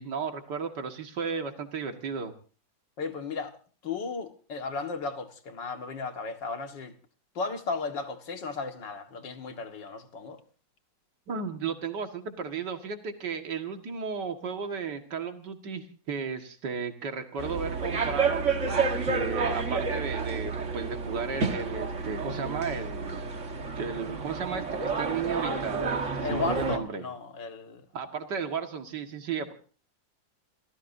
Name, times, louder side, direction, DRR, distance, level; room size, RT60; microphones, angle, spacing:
voice 1, 0.0-2.3 11.3-23.2 23.8-27.0 27.9-29.5, right 5 dB, 70° right, 2.5 m, -34 dB
voice 2, 3.0-3.6 3.8-6.9 7.4-10.4 26.2-27.9, left 4 dB, 75° left, 2.5 m, -35 dB
sound 1, 17.4-26.8, right 4 dB, 40° right, 2.0 m, -30 dB
29.0 x 18.0 x 2.7 m
omnidirectional pair, 1.9 m